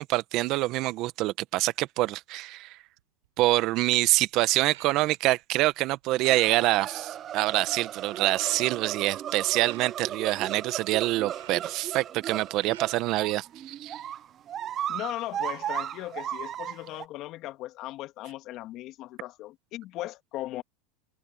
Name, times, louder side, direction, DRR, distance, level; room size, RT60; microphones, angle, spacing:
voice 1, 0.0-2.8 3.4-14.0, right 18 dB, 50° right, 1.2 m, -26 dB
sound 1, 3.0-3.3 3.7-5.4 5.7-6.9 7.4-7.5 7.7-9.9 10.9-13.2 13.5-14.4, right 16 dB, 80° right, 5.4 m, -53 dB
sound 2, 6.2-17.0, right 10 dB, 35° right, 0.5 m, -36 dB
voice 2, 14.9-20.6, left 16 dB, 50° left, 2.0 m, -38 dB
supercardioid pair, 115°, 0 cm